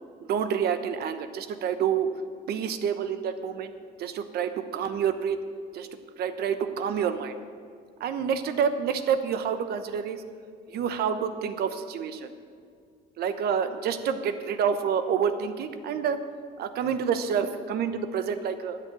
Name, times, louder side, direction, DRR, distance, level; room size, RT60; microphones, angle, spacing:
voice 1, 0.3-2.1 2.5-3.7 4.0-5.4 5.7-5.9 6.2-7.4 8.0-10.2 10.7-12.3 13.2-16.2 16.6-18.8, right 7 dB, 70° right, 9 dB, 1.0 m, -28 dB
12.5 x 7.6 x 8.1 m, 2.2 s
cardioid pair, 110°, 17 cm